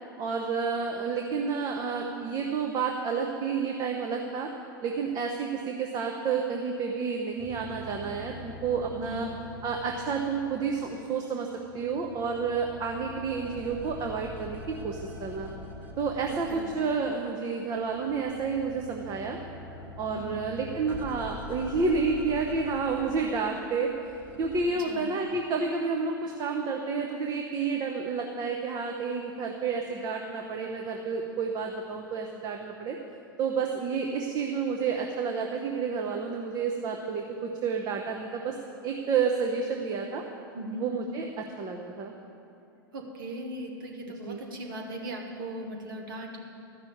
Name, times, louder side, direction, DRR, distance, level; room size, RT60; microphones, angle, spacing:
voice 1, 0.2-4.5 4.8-9.3 9.6-11.5 11.7-15.5 16.0-19.4 20.0-23.9 24.4-33.0 33.4-38.6 38.8-40.2 40.8-42.1 44.2-44.4, right 5 dB, 35° right, 2 dB, 1.0 m, -30 dB
sound 1, 7.4-11.2 11.5-17.4 17.7-24.7, left 1 dB, 15° right, 2.0 m, -45 dB
voice 2, 9.0-9.3 16.3-16.6 20.1-20.5 24.8-25.1 40.5-40.9 42.9-46.4, right 1 dB, 65° right, 2 dB, 2.0 m, -38 dB
12.5 x 6.1 x 8.6 m, 2.9 s
figure-of-eight pair, 90°, 12 cm